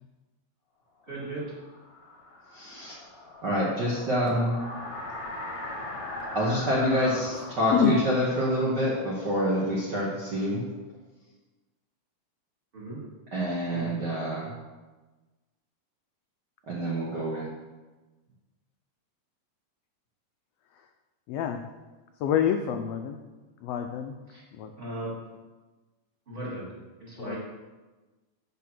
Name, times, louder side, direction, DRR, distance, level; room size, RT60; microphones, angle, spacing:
voice 1, 1.1-1.6 12.7-13.0 24.3-24.4 24.8-25.2 26.3-26.7 27.0-27.4, right 2 dB, 20° right, -7 dB, 2.4 m, -36 dB
sound 1, 1.2-10.0, left 2 dB, 40° left, 1.4 m, -40 dB
voice 2, 2.5-3.0 3.4-4.6 6.3-10.6 13.3-14.4 16.7-17.5, equal, 50° right, -5 dB, 1.4 m, -27 dB
voice 3, 7.3-8.1 8.5-8.6 13.7-13.9 21.3-21.6 22.2-23.2 23.6-24.1 24.5-24.7 27.2-27.4, left 8 dB, 80° left, 5 dB, 1.4 m, -27 dB
7.3 x 5.7 x 6.0 m, 1.2 s
omnidirectional pair, 3.3 m